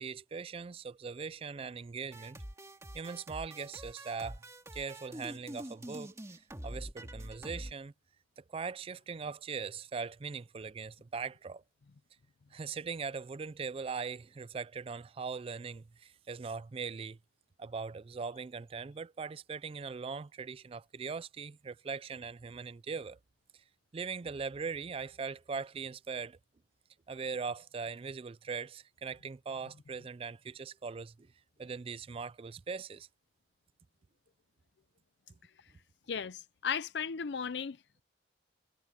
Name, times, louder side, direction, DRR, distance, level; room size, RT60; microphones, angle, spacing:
voice 1, 0.0-2.4 2.9-4.4 4.7-6.1 6.6-7.9 8.4-11.6 12.5-17.2 17.6-23.2 23.9-26.4 27.1-31.3 31.6-33.1, right 5 dB, 30° right, 0.3 m, -40 dB
sound 1, 2.1-7.7, right 1 dB, 15° right, 2.1 m, -45 dB
voice 2, 36.1-37.8, left 6 dB, 75° left, 0.5 m, -35 dB
head